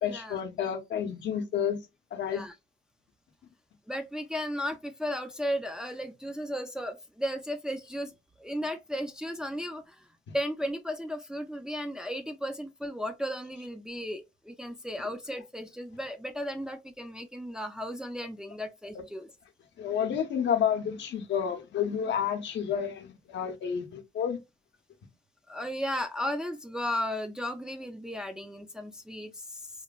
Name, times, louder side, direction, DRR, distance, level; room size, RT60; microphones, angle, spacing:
voice 1, 0.0-1.8 2.1-2.4 18.9-19.0 19.8-24.4, left 8 dB, 65° left, 0.7 m, -30 dB
voice 2, 3.9-8.1 8.4-10.1 10.3-19.3 25.5-29.7, equal, 5° right, 0.4 m, -35 dB
3.0 x 2.1 x 2.3 m
cardioid pair, 90°, 20 cm